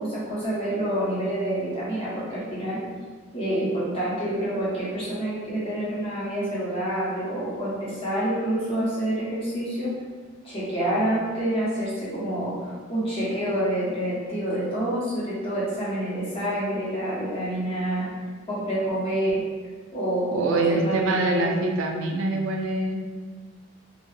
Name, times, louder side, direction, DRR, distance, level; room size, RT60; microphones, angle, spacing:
voice 1, 0.0-2.8 3.3-9.9 10.4-18.1 18.5-19.5 19.9-21.5, right 1 dB, 25° left, -9 dB, 0.7 m, -27 dB
voice 2, 20.3-23.0, right 2 dB, 65° right, 1 dB, 0.3 m, -25 dB
2.3 x 2.1 x 3.1 m, 1.5 s
head